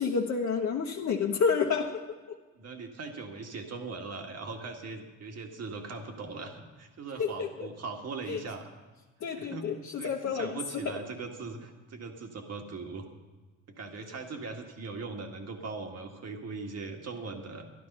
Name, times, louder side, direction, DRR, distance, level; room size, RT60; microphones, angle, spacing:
voice 1, 0.0-2.0 2.3-2.4 7.2-7.7 8.3-8.4 9.2-11.0, left 5 dB, 65° left, 1.1 m, -30 dB
voice 2, 2.6-8.7 9.4-9.7 10.0-13.1 13.7-17.7, right 4 dB, 55° right, 1.9 m, -40 dB
13.0 x 12.0 x 5.5 m
cardioid pair, 90°, 30 cm